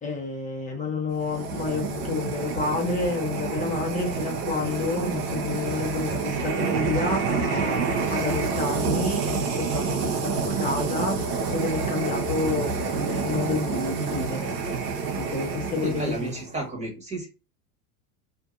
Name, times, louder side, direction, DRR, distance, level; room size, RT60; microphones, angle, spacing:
voice 1, 0.0-14.6 15.1-16.3, left 3 dB, 15° left, 1.1 m, -29 dB
sound 1, 1.1-16.5, right 5 dB, 80° right, 1.0 m, -28 dB
voice 2, 15.8-17.3, right 2 dB, 15° right, 1.5 m, -32 dB
2.8 x 2.6 x 2.4 m
hypercardioid pair, 100°, 46 cm